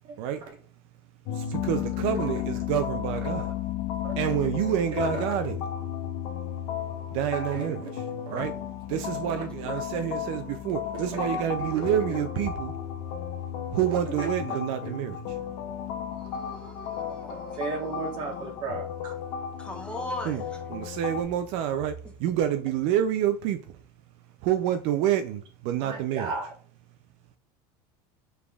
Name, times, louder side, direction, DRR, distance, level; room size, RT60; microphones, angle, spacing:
sound 1, 1.2-21.2, left 9 dB, 75° left, 0.6 m, -34 dB
voice 1, 1.3-3.5 4.2-5.6 7.1-8.5 8.9-12.7 13.7-15.4 20.3-20.4 20.7-23.8 24.4-26.3, right 10 dB, 65° right, 0.4 m, -28 dB
voice 2, 3.2-3.5 4.0-4.7 5.0-5.3 7.3-7.7 8.2-8.5 9.2-9.5 9.9-10.0 10.9-12.4 13.7-14.6 14.8-14.9 16.1-19.1 21.7-21.8 25.8-26.5, right 4 dB, 45° right, 1.2 m, -37 dB
voice 3, 16.4-17.7 18.3-18.5 19.6-20.4, left 1 dB, 10° left, 0.9 m, -39 dB
5.0 x 3.4 x 2.3 m
cardioid pair, 150°, 11 cm